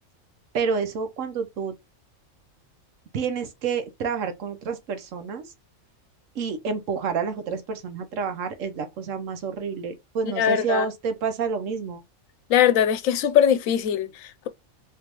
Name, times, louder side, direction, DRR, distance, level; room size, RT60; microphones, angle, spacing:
voice 1, 0.5-1.7 3.1-5.5 6.3-12.0, right 5 dB, 70° right, 1.1 m, -29 dB
voice 2, 10.4-10.9 12.5-14.5, left 9 dB, 75° left, 0.9 m, -21 dB
3.4 x 2.9 x 2.9 m
omnidirectional pair, 1.4 m